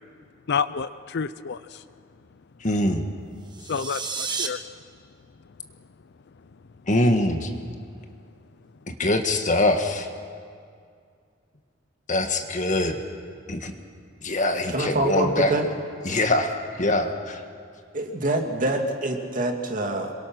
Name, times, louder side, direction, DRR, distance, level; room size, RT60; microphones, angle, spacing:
voice 1, 0.5-1.8 3.7-4.6, left 6 dB, 60° left, 14 dB, 0.5 m, -29 dB
voice 2, 2.6-3.0 6.9-7.5 8.9-10.1 12.1-13.0 13.5-13.7 14.2-15.5 16.0-17.4, left 1 dB, 40° left, 5 dB, 1.7 m, -23 dB
sound 1, 3.4-4.5, right 5 dB, 20° right, 1.3 m, -31 dB
voice 3, 14.7-15.7 17.9-20.1, right 1 dB, 45° right, 3 dB, 2.2 m, -25 dB
26.5 x 23.0 x 6.2 m, 2.2 s
head